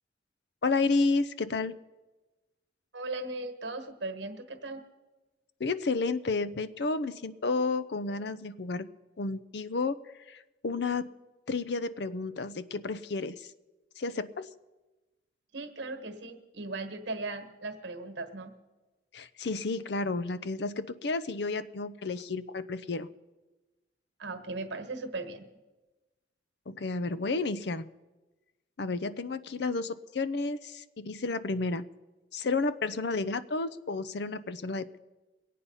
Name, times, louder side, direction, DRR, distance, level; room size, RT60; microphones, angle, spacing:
voice 1, 0.6-1.7 5.6-8.9 9.2-10.0 10.3-11.1 11.5-13.5 14.0-14.5 19.1-23.1 26.7-27.9 28.8-31.8 32.3-35.0, left 3 dB, 60° left, 15 dB, 0.5 m, -31 dB
voice 2, 2.9-4.8 15.5-18.5 24.2-25.5, right 2 dB, 70° right, 7 dB, 1.4 m, -38 dB
22.5 x 8.5 x 5.5 m, 1.1 s
head